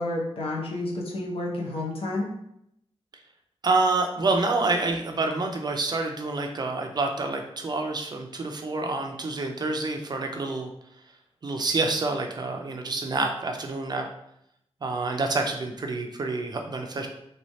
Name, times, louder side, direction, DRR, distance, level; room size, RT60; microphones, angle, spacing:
voice 1, 0.0-2.3, left 2 dB, 65° left, -2 dB, 0.9 m, -30 dB
voice 2, 3.6-10.7 11.4-14.0 14.8-17.1, right 3 dB, 40° right, 3 dB, 0.4 m, -27 dB
3.2 x 3.1 x 2.7 m, 0.76 s
wide cardioid pair, 145°, 10 cm